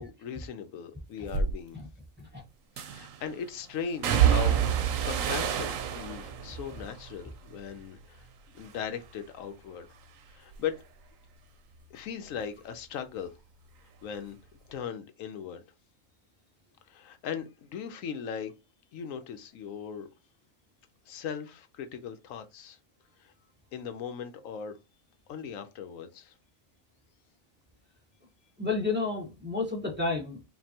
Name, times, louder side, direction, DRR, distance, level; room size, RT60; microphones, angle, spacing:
voice 1, 0.0-1.8 2.8-8.2 8.5-9.9 10.3-10.7 11.9-13.3 14.0-14.4 14.7-15.6 16.9-18.5 18.9-20.1 21.1-22.8 23.2-23.3 23.7-24.8 25.3-26.3, left 7 dB, 80° left, 1.0 m, -38 dB
sound 1, 1.3-1.5 2.8-3.2 4.0-8.3 8.6-9.2 9.6-12.9 13.1-14.3 14.6-14.7, right 9 dB, 80° right, 1.0 m, -30 dB
voice 2, 28.6-30.4, left 3 dB, 10° right, 1.2 m, -31 dB
5.3 x 2.6 x 2.8 m
omnidirectional pair, 1.4 m